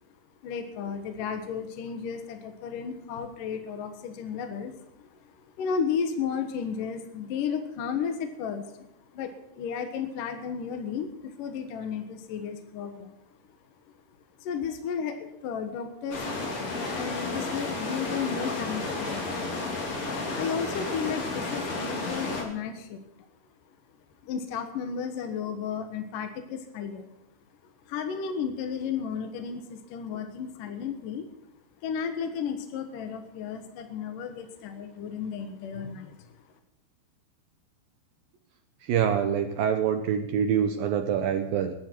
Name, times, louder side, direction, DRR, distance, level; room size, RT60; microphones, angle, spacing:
voice 1, 0.4-13.2 14.4-16.3 16.9-19.4 20.3-23.0 24.2-27.1 27.9-31.3 31.8-36.3, left 6 dB, 65° left, 6 dB, 2.3 m, -33 dB
sound 1, 16.1-22.4, left 3 dB, 40° left, 3.6 m, -32 dB
voice 2, 38.8-41.8, right 8 dB, 80° right, 7 dB, 2.1 m, -25 dB
21.5 x 12.0 x 4.5 m, 0.90 s
omnidirectional pair, 5.3 m